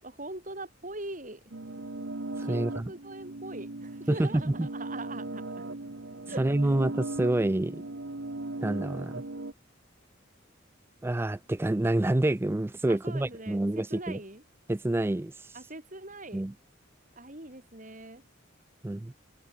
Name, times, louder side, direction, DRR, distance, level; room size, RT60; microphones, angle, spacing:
voice 1, 0.0-1.4 2.4-5.7 6.3-6.7 12.9-14.4 15.5-16.4 17.2-18.2, right 2 dB, 40° right, 6.3 m, -42 dB
sound 1, 1.5-9.5, right 2 dB, 60° right, 1.3 m, -38 dB
voice 2, 2.4-2.9 4.1-4.7 6.4-7.8 8.6-9.2 11.0-14.2 14.7-15.3 16.3-16.5 18.8-19.1, right 1 dB, 10° right, 0.3 m, -27 dB
head